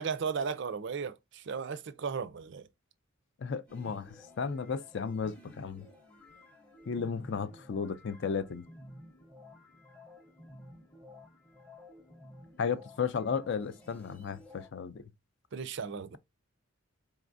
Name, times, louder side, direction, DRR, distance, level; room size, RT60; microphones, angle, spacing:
voice 1, 0.0-2.7 15.5-16.2, right 6 dB, 55° right, 0.4 m, -35 dB
voice 2, 3.4-5.9 6.9-8.7 12.6-15.0, left 6 dB, 55° left, 0.4 m, -34 dB
sound 1, 3.7-14.7, left 1 dB, 5° left, 0.7 m, -53 dB
4.0 x 3.5 x 2.5 m
head